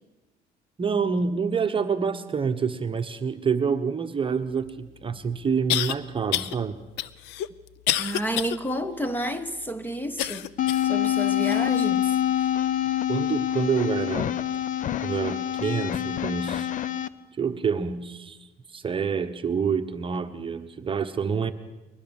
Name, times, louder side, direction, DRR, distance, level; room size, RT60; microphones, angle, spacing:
voice 1, 0.8-6.8 13.1-14.3 15.0-16.7 17.4-21.5, right 6 dB, 30° right, 1.1 m, -27 dB
sound 1, 4.7-4.8 5.7-5.9 6.3-6.6 7.0-8.6 9.0-9.1 10.2-10.9 11.5-11.6 12.4-12.5, left 13 dB, 90° left, 0.7 m, -28 dB
voice 2, 8.0-10.5 10.8-12.2, equal, 10° left, 1.3 m, -30 dB
sound 2, 10.6-17.1, left 11 dB, 50° left, 0.8 m, -26 dB
22.0 x 19.5 x 7.2 m
cardioid pair, 110°, 17 cm